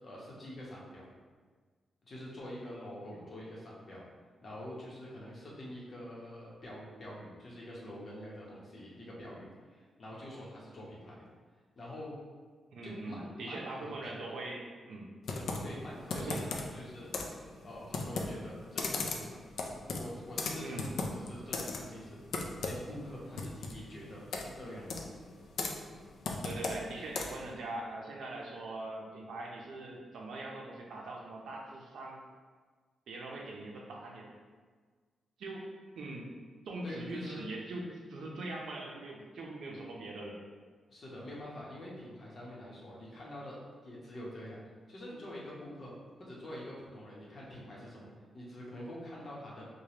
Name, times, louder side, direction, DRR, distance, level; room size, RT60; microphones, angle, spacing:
voice 1, 0.0-1.0 2.1-4.0 4.4-11.3 11.7-12.2 12.8-14.2 15.3-17.1 17.6-19.4 19.9-22.2 22.6-25.2 36.8-37.4 40.9-43.6 43.8-44.6 44.9-45.9 46.2-49.7, left 1 dB, 35° left, -5 dB, 0.9 m, -46 dB
voice 2, 12.7-15.1 16.1-16.5 20.6-20.8 26.4-32.2 33.1-34.3 35.4-36.3 36.7-40.4, right 2 dB, 70° right, -1 dB, 0.6 m, -42 dB
Computer keyboard, 15.2-27.5, left 3 dB, 65° left, 0.4 m, -38 dB
4.8 x 2.2 x 2.9 m, 1.5 s
wide cardioid pair, 160°, 0 cm